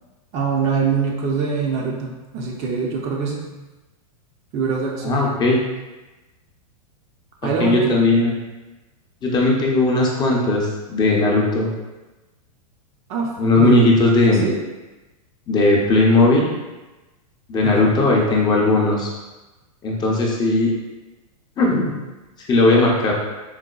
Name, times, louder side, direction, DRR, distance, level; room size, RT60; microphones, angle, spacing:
voice 1, 0.3-3.4 4.5-5.3 7.4-8.0 13.1-13.9 14.3-14.6 17.6-17.9, right 5 dB, 35° right, -2 dB, 0.5 m, -24 dB
voice 2, 5.0-5.6 7.6-8.3 9.2-11.7 13.4-14.4 15.5-16.5 17.5-19.1 19.8-20.7 21.6-21.9 22.5-23.1, left 2 dB, 20° left, -2 dB, 0.5 m, -17 dB
4.0 x 2.1 x 2.2 m, 1.1 s
hypercardioid pair, 125°, 19 cm